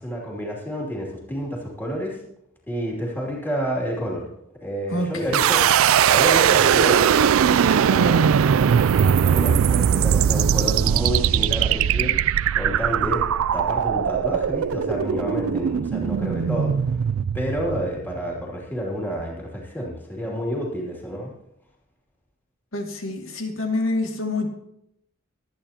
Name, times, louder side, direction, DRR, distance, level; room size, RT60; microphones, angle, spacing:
voice 1, 0.0-2.2 2.7-4.3 4.6-5.6 6.1-7.2 7.5-8.3 9.0-12.2 12.6-13.2 13.5-16.7 17.3-21.3, equal, 10° left, -3 dB, 2.8 m, -29 dB
voice 2, 4.9-5.3 22.7-24.5, left 2 dB, 75° left, 2 dB, 2.3 m, -26 dB
sound 1, 5.3-18.3, right 8 dB, 75° right, 0.4 m, -20 dB
24.5 x 9.1 x 2.9 m, 0.80 s
head